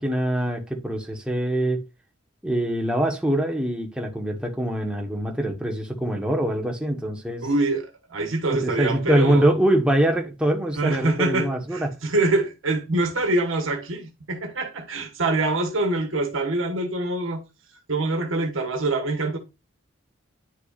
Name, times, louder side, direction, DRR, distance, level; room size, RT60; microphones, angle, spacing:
voice 1, 0.0-1.8 2.4-7.5 8.5-11.9, right 1 dB, 5° right, 1.1 m, -24 dB
voice 2, 7.4-9.5 10.7-17.4 17.9-19.4, right 2 dB, 75° right, 1.3 m, -25 dB
9.7 x 5.7 x 2.5 m
head